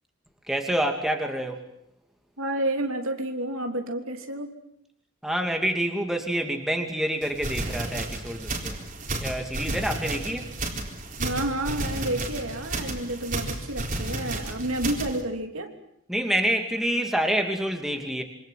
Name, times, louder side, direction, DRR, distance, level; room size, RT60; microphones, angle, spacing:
voice 1, 0.5-1.6 5.2-8.8 9.2-10.5 16.1-18.2, right 1 dB, ahead, 4 dB, 2.7 m, -27 dB
voice 2, 2.4-4.6 9.7-9.8 10.0-10.4 11.2-15.7, right 1 dB, 80° right, 4 dB, 3.3 m, -30 dB
sound 1, 7.2-15.2, right 2 dB, 40° right, 4.1 m, -32 dB
27.0 x 25.5 x 7.8 m, 0.77 s
head